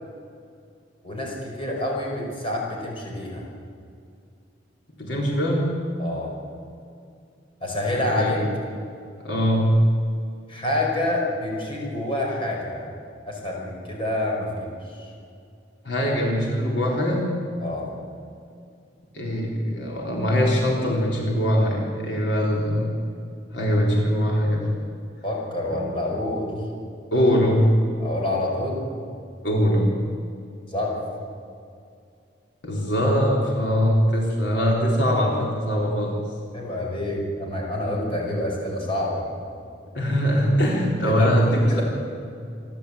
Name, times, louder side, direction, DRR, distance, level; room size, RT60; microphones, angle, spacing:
voice 1, 1.0-3.4 6.0-6.3 7.6-8.4 10.5-12.9 13.3-14.7 15.0-15.1 17.6-17.9 25.2-26.5 28.0-28.9 30.7-31.0 36.5-39.3 41.0-41.8, left 1 dB, 30° left, -2 dB, 5.4 m, -27 dB
voice 2, 5.0-5.7 8.0-8.3 9.2-9.7 15.8-17.3 19.1-22.9 23.5-24.7 25.6-25.8 27.1-27.7 29.4-29.9 32.6-36.2 39.9-41.8, equal, 70° left, -2 dB, 3.8 m, -22 dB
27.0 x 12.0 x 8.4 m, 2.4 s
head